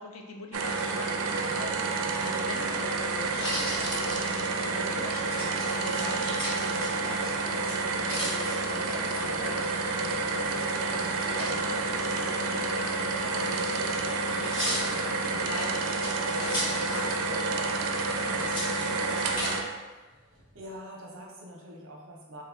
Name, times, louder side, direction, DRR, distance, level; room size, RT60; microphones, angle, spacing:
voice 1, 0.0-1.9 2.1-4.2 4.5-6.2 6.5-7.6 7.9-9.7 10.2-15.8 16.2-17.7 18.0-19.5, left 3 dB, 65° left, 2 dB, 0.5 m, -43 dB
sound 1, 0.5-19.6, right 3 dB, 85° right, 0.4 m, -29 dB
sound 2, 3.0-4.8 5.3-7.3 7.6-9.2 11.0-11.5 12.5-17.4 17.7-17.8 18.4-19.5 20.1-20.6, equal, 20° left, 1.3 m, -37 dB
voice 2, 19.9-22.4, equal, 60° right, -2 dB, 0.8 m, -45 dB
3.1 x 3.0 x 3.6 m, 1.3 s
head